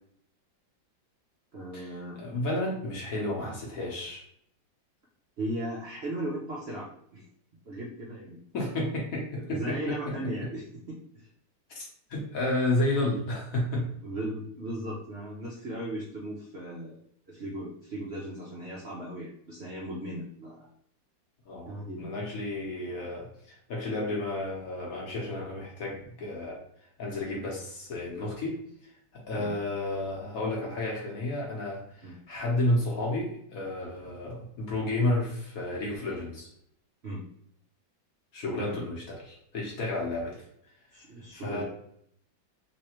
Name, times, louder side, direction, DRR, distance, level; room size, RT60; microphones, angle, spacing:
voice 1, 1.5-2.2 5.4-7.3 7.6-8.4 9.5-11.3 14.0-17.0 17.3-20.7 21.7-22.1 29.3-29.5 32.0-32.2 37.0-37.2 38.6-38.8 40.9-41.6, right 1 dB, 60° right, -5 dB, 0.7 m, -37 dB
voice 2, 2.2-4.2 8.5-10.1 11.7-13.9 21.5-26.6 27.0-28.6 28.8-36.5 38.3-40.4 41.3-41.6, left 1 dB, 55° left, -2 dB, 1.1 m, -31 dB
3.3 x 3.2 x 3.0 m, 0.69 s
omnidirectional pair, 2.1 m